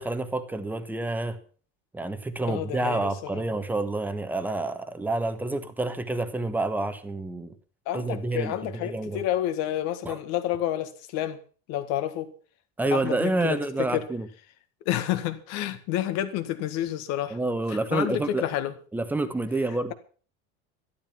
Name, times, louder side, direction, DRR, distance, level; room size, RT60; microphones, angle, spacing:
voice 1, 0.0-1.4 1.9-7.5 7.9-9.2 10.0-10.2 12.8-14.3 17.3-18.4 18.9-19.9, right 2 dB, 5° right, 1.1 m, -28 dB
voice 2, 2.5-3.4 7.9-11.4 11.7-12.3 12.9-14.1 14.9-17.4 17.7-18.7, left 12 dB, 55° left, 1.8 m, -29 dB
12.5 x 12.5 x 6.0 m
cardioid pair, 165°, 30 cm